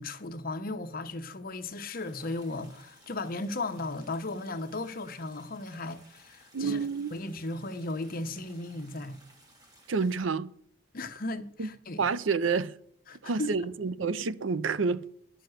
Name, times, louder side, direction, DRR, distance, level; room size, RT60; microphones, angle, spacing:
voice 1, 0.0-6.8 7.1-9.2 10.9-12.1 13.1-13.5, left 2 dB, 50° left, 1.0 m, -36 dB
sound 1, 2.0-10.2, right 1 dB, 20° right, 2.8 m, -59 dB
voice 2, 6.5-7.2 9.9-10.5 11.6-11.7 12.0-12.8 13.2-15.1, right 5 dB, 85° right, 0.6 m, -29 dB
10.5 x 6.2 x 7.9 m
head